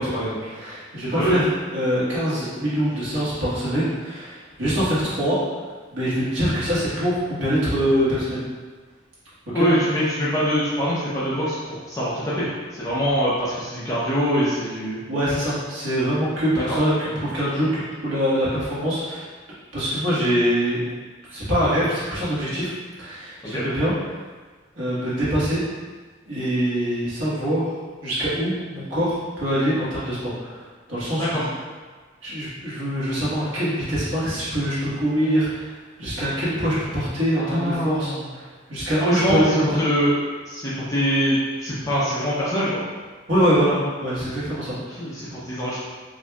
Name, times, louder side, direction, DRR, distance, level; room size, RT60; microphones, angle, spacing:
voice 1, 0.0-1.5 1.7-5.4 5.9-8.4 9.5-9.7 15.1-19.3 19.7-20.9 21.3-22.7 23.0-24.2 24.7-25.6 26.3-31.5 32.2-39.6 43.3-44.9, equal, 75° right, -9 dB, 1.4 m, -24 dB
voice 2, 1.1-1.5 9.5-12.5 12.7-15.0 16.6-16.7 23.4-23.6 31.1-31.4 37.4-38.2 39.0-42.8 44.9-45.8, equal, 15° left, -9 dB, 0.6 m, -23 dB
4.9 x 2.7 x 2.3 m, 1.4 s
head